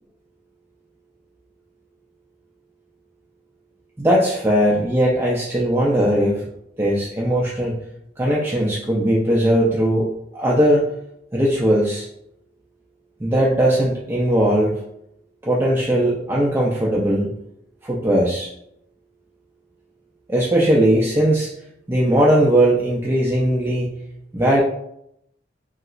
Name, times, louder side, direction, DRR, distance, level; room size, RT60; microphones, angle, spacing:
voice 1, 4.0-6.4 6.8-7.8 8.2-11.0 11.3-12.1 13.2-14.8 15.4-17.3 17.8-18.5 20.3-21.5 21.9-24.0 24.3-24.6, right 1 dB, 15° right, -5 dB, 0.3 m, -19 dB
3.1 x 2.8 x 2.4 m, 0.77 s
head